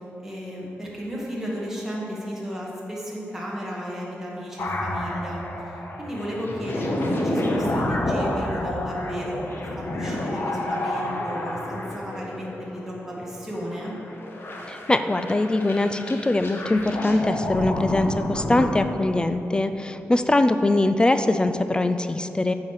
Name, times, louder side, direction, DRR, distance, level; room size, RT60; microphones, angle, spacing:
voice 1, 0.2-13.9, equal, 10° right, -5 dB, 1.7 m, -34 dB
sound 1, 4.6-18.7, left 1 dB, 50° left, 1.2 m, -29 dB
voice 2, 14.7-22.5, left 2 dB, 20° left, 9 dB, 0.3 m, -22 dB
9.6 x 4.8 x 7.3 m, 2.9 s
wide cardioid pair, 130°, 5 cm